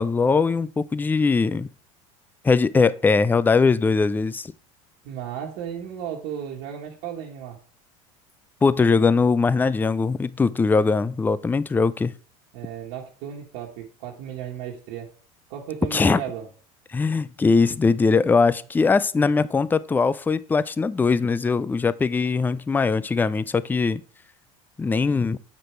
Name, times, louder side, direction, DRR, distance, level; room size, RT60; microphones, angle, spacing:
voice 1, 0.0-1.7 2.4-4.5 8.6-12.1 15.9-16.2 16.9-24.0 24.8-25.4, left 4 dB, 10° left, 0.4 m, -21 dB
voice 2, 5.0-7.6 12.5-15.1 15.5-16.5, right 9 dB, 65° right, 1.5 m, -34 dB
8.0 x 4.9 x 4.5 m
supercardioid pair, 95°, 18 cm